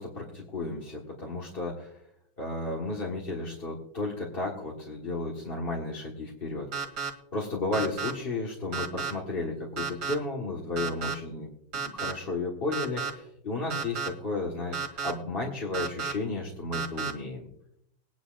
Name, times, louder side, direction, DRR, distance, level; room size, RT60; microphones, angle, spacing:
voice 1, 0.0-2.0 2.4-6.7 7.3-11.5 11.7-17.5, left 2 dB, 30° left, -3 dB, 1.7 m, -33 dB
sound 1, 6.7-7.1 7.7-8.1 8.7-9.1 9.8-10.1 10.8-11.1 11.7-12.1 12.7-13.1 13.7-14.1 14.7-15.1 15.7-16.1 16.7-17.1, right 6 dB, 55° right, 2.4 m, -32 dB
22.0 x 10.5 x 2.5 m, 0.75 s
omnidirectional pair, 2.1 m